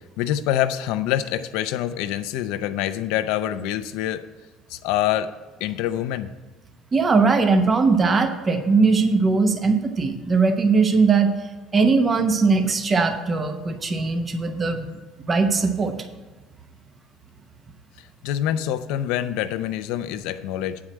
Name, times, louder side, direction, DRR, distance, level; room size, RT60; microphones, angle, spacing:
voice 1, 0.2-4.2 4.7-5.3 5.6-6.3 18.2-20.8, left 11 dB, 80° left, 11 dB, 0.5 m, -25 dB
voice 2, 6.9-11.3 11.7-14.8 15.2-16.0, right 4 dB, 25° right, 7 dB, 0.9 m, -20 dB
8.9 x 4.8 x 7.4 m, 1.3 s
cardioid pair, 125°, 0 cm